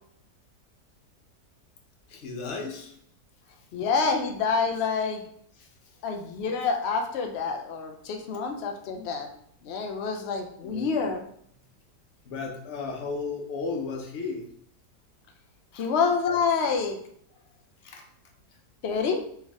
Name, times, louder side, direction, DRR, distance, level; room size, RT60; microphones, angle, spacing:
voice 1, 2.1-2.9 5.6-5.7 10.6-10.9 12.2-14.4 15.7-15.9 17.8-18.1, left 4 dB, 55° left, 1 dB, 0.9 m, -34 dB
voice 2, 3.7-5.2 6.0-9.3 9.6-11.2 15.7-17.0 18.8-19.2, left 5 dB, 90° left, 4 dB, 0.5 m, -27 dB
4.4 x 3.4 x 3.5 m, 0.65 s
omnidirectional pair, 1.8 m